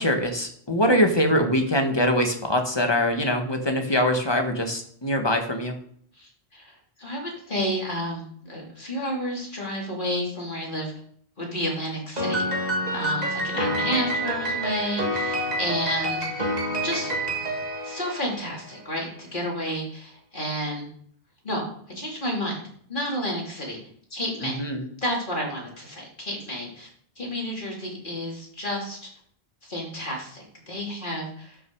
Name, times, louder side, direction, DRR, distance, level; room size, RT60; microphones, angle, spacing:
voice 1, 0.0-5.7 24.4-24.9, equal, 25° left, 4 dB, 1.5 m, -23 dB
voice 2, 6.1-10.9 11.4-16.5 16.8-17.1 17.8-20.9 21.4-21.7 21.9-22.6 22.9-23.8 24.1-24.6 25.0-26.9 27.2-29.1 29.6-31.6, equal, 45° left, -2 dB, 3.3 m, -31 dB
Piano, 12.2-18.7, right 1 dB, 40° right, 2.0 m, -28 dB
12.0 x 6.4 x 4.7 m, 0.62 s
omnidirectional pair, 1.1 m